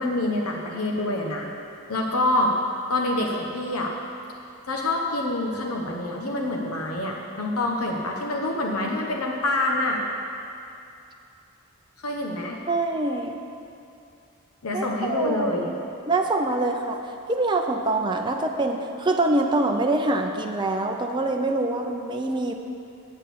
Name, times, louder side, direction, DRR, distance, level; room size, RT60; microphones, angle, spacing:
voice 1, 0.0-1.5 1.9-2.6 2.9-3.9 4.7-10.0 12.0-12.6 14.6-15.7, left 1 dB, 80° left, 0 dB, 1.1 m, -26 dB
voice 2, 12.7-13.3 14.7-15.8 16.1-22.5, right 2 dB, 20° right, 2 dB, 0.5 m, -25 dB
8.9 x 6.2 x 8.4 m, 2.7 s
head